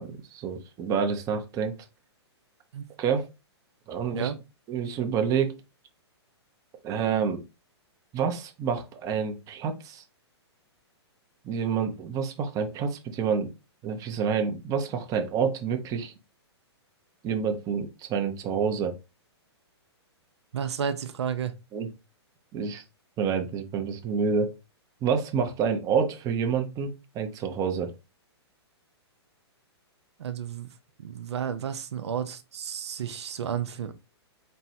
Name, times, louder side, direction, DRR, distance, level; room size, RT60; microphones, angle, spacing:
voice 1, 0.0-1.7 3.0-3.3 3.9-4.3 4.7-5.6 6.8-7.4 8.1-10.0 11.4-13.5 13.8-16.1 17.2-18.9 21.7-21.9 22.5-22.8 23.2-24.5 25.0-27.9, right 6 dB, 25° right, 0.7 m, -28 dB
voice 2, 20.5-21.5 30.2-30.7 31.0-33.9, right 8 dB, 75° right, 0.6 m, -32 dB
4.3 x 2.2 x 4.2 m
hypercardioid pair, 125°, 14 cm